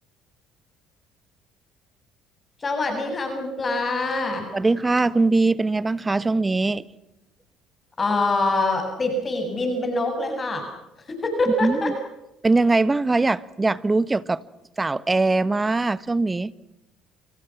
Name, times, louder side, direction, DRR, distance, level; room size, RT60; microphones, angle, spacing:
voice 1, 2.6-4.5 8.0-10.6 11.1-11.9, left 2 dB, 30° left, 7.8 m, -24 dB
voice 2, 4.5-6.8 11.6-11.9 12.4-14.4 14.8-16.5, right 3 dB, 20° right, 1.3 m, -21 dB
29.5 x 28.5 x 6.1 m
hypercardioid pair, 65°, 0 cm